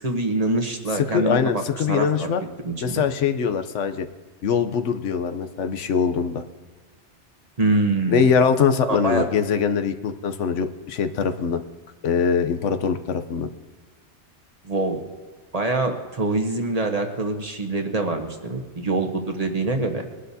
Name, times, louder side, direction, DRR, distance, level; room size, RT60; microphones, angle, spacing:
voice 1, 0.0-2.3 2.6-3.0 7.6-8.3 8.9-9.3 14.6-15.0 15.5-20.1, right 2 dB, 35° right, 4 dB, 1.1 m, -25 dB
voice 2, 1.1-2.4 2.8-4.1 4.4-6.4 8.1-11.6 12.0-13.5, left 6 dB, 90° left, 9 dB, 1.1 m, -22 dB
20.5 x 11.5 x 2.7 m, 1.4 s
omnidirectional pair, 1.2 m